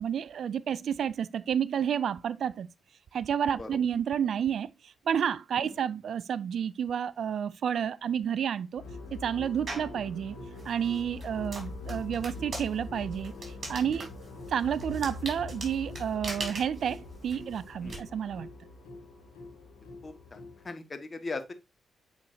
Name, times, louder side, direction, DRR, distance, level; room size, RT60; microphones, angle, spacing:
voice 1, 0.0-2.7 3.1-8.8 9.1-10.4 10.6-14.1 14.5-18.5, right 8 dB, 70° right, 0.4 m, -30 dB
sound 1, 8.8-20.7, left 3 dB, 85° left, 2.7 m, -43 dB
sound 2, 9.7-10.0 10.6-18.0, right 3 dB, 50° right, 3.2 m, -41 dB
voice 2, 20.0-21.5, left 3 dB, 40° left, 1.5 m, -40 dB
8.6 x 4.4 x 2.7 m
supercardioid pair, 50°, 0 cm